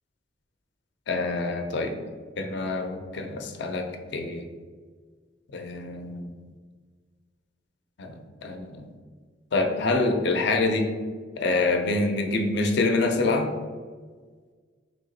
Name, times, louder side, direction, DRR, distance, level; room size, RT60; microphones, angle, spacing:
voice 1, 1.1-1.9 2.4-4.5 5.5-6.3 8.0-8.9 9.5-10.9 11.4-13.5, left 3 dB, 65° left, 5 dB, 0.5 m, -26 dB
3.4 x 2.8 x 3.9 m, 1.5 s
head